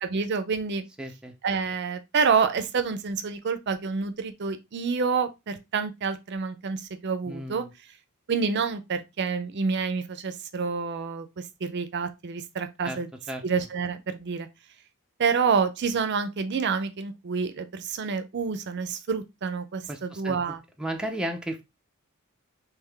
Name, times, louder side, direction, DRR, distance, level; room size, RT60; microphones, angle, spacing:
voice 1, 0.0-0.8 1.4-7.7 8.3-13.1 13.4-14.5 15.2-20.6, right 5 dB, 55° right, 0.5 m, -28 dB
voice 2, 1.0-1.3 7.3-7.7 12.8-13.0 13.3-13.4 19.9-20.4 20.8-21.6, right 1 dB, 5° right, 0.5 m, -33 dB
3.7 x 2.9 x 3.3 m
head